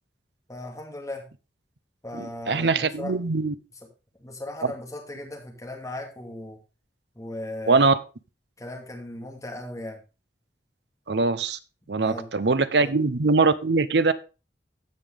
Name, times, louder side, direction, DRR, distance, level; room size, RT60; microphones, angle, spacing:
voice 1, 0.5-1.2 2.0-3.1 4.2-6.6 7.2-7.9 8.6-10.0 11.9-12.5 12.8-12.9, left 1 dB, 20° left, 1 dB, 2.4 m, -37 dB
voice 2, 2.1-3.5 7.7-7.9 11.1-11.6 11.9-14.1, right 3 dB, 65° right, 14 dB, 0.7 m, -22 dB
15.5 x 5.3 x 3.6 m, 0.31 s
head